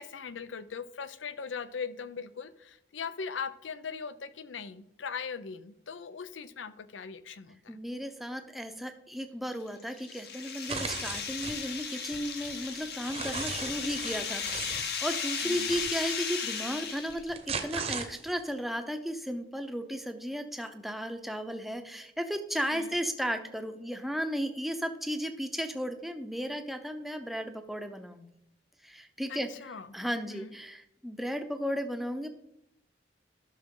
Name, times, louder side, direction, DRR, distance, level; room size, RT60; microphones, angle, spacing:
voice 1, 0.0-7.8 15.4-15.7 22.7-22.9 29.3-29.9 30.3-30.5, left 6 dB, 85° left, 14 dB, 0.6 m, -40 dB
voice 2, 7.7-28.3 28.8-29.5 29.9-32.3, equal, ahead, 6 dB, 0.6 m, -35 dB
sound 1, 9.5-17.3, left 6 dB, 55° left, 1.1 m, -36 dB
sound 2, 10.7-11.6 12.1-14.8 15.7-15.9 17.1-18.5, right 5 dB, 35° right, 0.8 m, -37 dB
12.5 x 6.2 x 3.8 m, 0.78 s
head